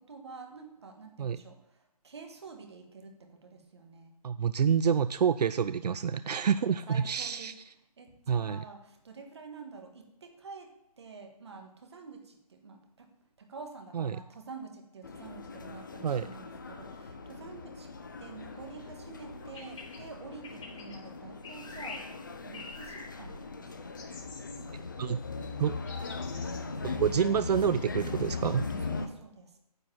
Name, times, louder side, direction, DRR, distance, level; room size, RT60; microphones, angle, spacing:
voice 1, 0.0-4.1 6.9-7.5 8.0-13.1 13.4-17.9 18.2-22.1 22.4-23.9 28.8-29.6, right 4 dB, 45° right, 4 dB, 1.6 m, -48 dB
voice 2, 4.2-7.5 8.3-8.6 13.9-14.2 16.0-16.3 25.0-25.2 25.6-25.7 26.8-28.7, right 7 dB, 80° right, 14 dB, 0.4 m, -28 dB
sound 1, 15.0-29.1, left 4 dB, 30° left, 0.6 m, -39 dB
sound 2, 19.4-20.0 20.4-21.0 21.4-22.0 22.5-23.1 24.0-24.6 25.4-25.5 25.9-26.6, left 4 dB, 55° left, 2.9 m, -45 dB
9.6 x 4.6 x 7.5 m, 0.79 s
hypercardioid pair, 175°, 20 cm